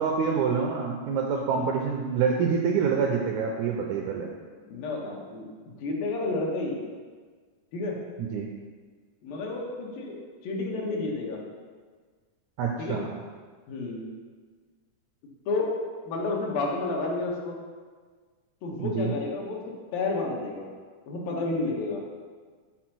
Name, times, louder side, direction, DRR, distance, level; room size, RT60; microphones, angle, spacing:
voice 1, 0.0-4.3 8.2-8.5 12.6-13.1 18.8-19.1, right 6 dB, 90° right, 1 dB, 1.7 m, -26 dB
voice 2, 4.6-5.5 5.8-6.8 7.7-8.0 9.2-10.2 10.4-11.4 12.8-13.0 13.7-14.1 15.5-17.5 18.6-19.6 19.9-20.7 21.1-22.0, left 3 dB, 85° left, -2 dB, 3.0 m, -31 dB
7.1 x 4.4 x 6.0 m, 1.5 s
omnidirectional pair, 4.0 m